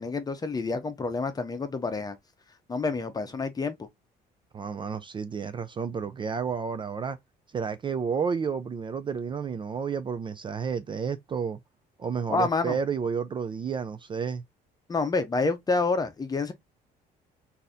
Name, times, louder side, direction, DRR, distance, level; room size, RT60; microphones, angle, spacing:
voice 1, 0.0-2.2 2.7-3.9 12.3-12.8 14.9-16.5, left 3 dB, 25° left, 0.8 m, -28 dB
voice 2, 4.5-7.2 7.5-11.6 12.0-14.4, right 6 dB, 30° right, 0.4 m, -31 dB
3.9 x 2.8 x 2.4 m
cardioid pair, 110°, 17 cm